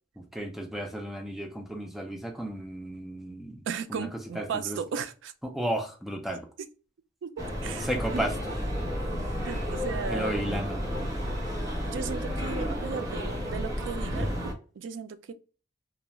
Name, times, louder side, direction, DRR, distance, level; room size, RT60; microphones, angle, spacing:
voice 1, 0.3-3.6 3.9-4.1 4.4-4.8 5.4-6.4 7.8-8.3 10.1-10.8, right 1 dB, ahead, 0.4 m, -33 dB
voice 2, 3.7-5.3 6.6-6.7 7.2-8.4 9.4-10.3 11.8-15.3, right 6 dB, 75° right, 0.3 m, -36 dB
sound 1, 7.4-14.5, equal, 15° right, 1.0 m, -32 dB
2.4 x 2.2 x 2.9 m
head